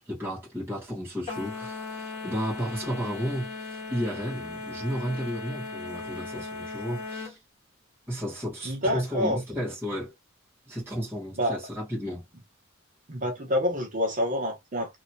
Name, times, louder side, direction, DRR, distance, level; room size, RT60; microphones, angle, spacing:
voice 1, 0.0-7.4 8.1-10.1 10.7-12.2, equal, 10° right, 1.4 m, -33 dB
sound 1, 1.3-7.4, left 3 dB, 35° left, 1.4 m, -37 dB
voice 2, 8.6-9.4 11.4-11.6 13.1-15.0, equal, 40° right, 0.9 m, -27 dB
2.9 x 2.8 x 2.7 m
head